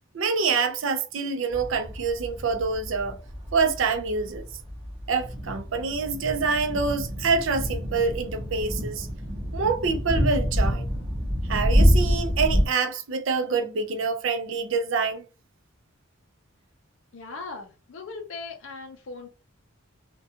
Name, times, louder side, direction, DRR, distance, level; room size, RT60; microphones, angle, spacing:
voice 1, 0.1-3.2 3.5-4.4 5.1-9.1 9.5-10.9 11.5-15.2, right 4 dB, 65° right, 0.4 m, -26 dB
sound 1, 1.5-12.7, equal, 30° right, 0.7 m, -27 dB
voice 2, 17.1-19.3, left 4 dB, 65° left, 0.5 m, -39 dB
2.4 x 2.2 x 2.7 m
head